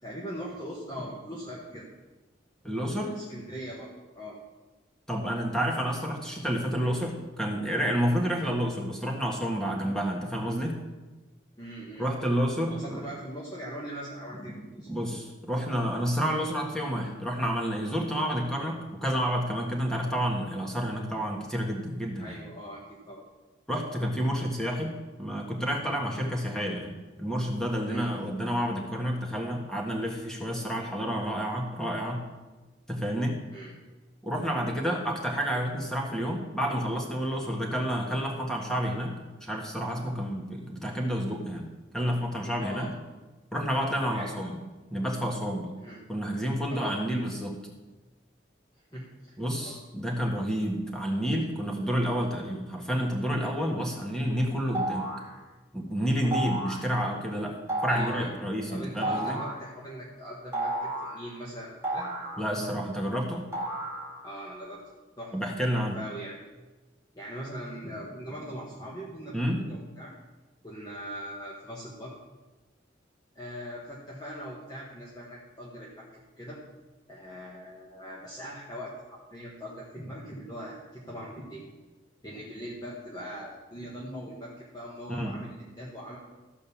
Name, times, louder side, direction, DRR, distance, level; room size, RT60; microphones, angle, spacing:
voice 1, 0.0-1.9 2.6-2.8 3.0-4.4 11.6-12.1 12.6-15.1 22.2-23.2 27.9-28.3 33.5-33.7 42.6-43.0 44.0-44.5 45.8-46.0 46.7-47.0 48.9-49.1 49.6-49.8 56.2-56.4 57.9-58.4 58.7-62.1 64.2-64.8 65.2-65.3 65.7-66.3 67.1-70.1 70.6-72.1 73.3-76.1 76.4-76.6 77.1-78.9 79.3-81.7 82.2-86.2, equal, 20° left, -4 dB, 1.5 m, -41 dB
voice 2, 2.6-3.1 5.1-10.8 12.0-13.0 14.9-22.4 23.7-24.9 25.2-32.2 32.9-33.4 34.2-41.7 41.9-42.9 43.5-44.6 44.9-45.7 46.1-47.6 49.4-55.1 55.7-59.4 62.4-63.5 65.3-66.0 69.3-69.6 85.1-85.4, equal, 5° left, -1 dB, 1.6 m, -30 dB
sound 1, 54.7-55.3 56.3-56.9 57.7-58.3 59.0-59.6 60.5-61.2 61.8-62.8 63.5-64.4, right 1 dB, 15° right, 2.2 m, -32 dB
14.0 x 5.3 x 7.2 m, 1.2 s
head